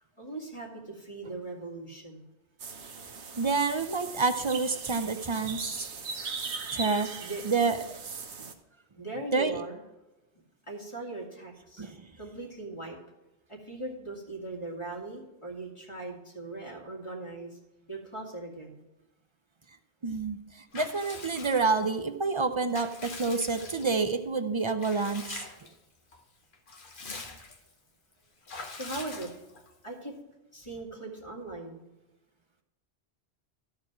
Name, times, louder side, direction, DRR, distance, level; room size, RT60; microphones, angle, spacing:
voice 1, 0.2-2.3 7.2-7.4 8.4-8.5 9.0-9.8 10.7-11.9 12.2-13.0 13.5-17.6 17.9-18.8 28.7-29.3 29.8-30.2 30.5-31.8, right 2 dB, 25° left, -2 dB, 2.1 m, -39 dB
sound 1, 2.6-8.5, right 4 dB, 80° right, 1.3 m, -39 dB
voice 2, 3.4-5.9 6.7-7.1 7.4-7.8 9.3-9.6 11.8-12.0 20.0-20.4 20.7-25.5, right 4 dB, 40° right, 9 dB, 0.4 m, -28 dB
Water / Bathtub (filling or washing) / Liquid, 20.7-22.0 22.4-24.2 24.8-25.8 26.1-26.2 26.5-27.7 28.5-29.7, left 3 dB, 50° left, 1.2 m, -43 dB
13.0 x 4.7 x 5.9 m, 1.0 s
omnidirectional pair, 1.1 m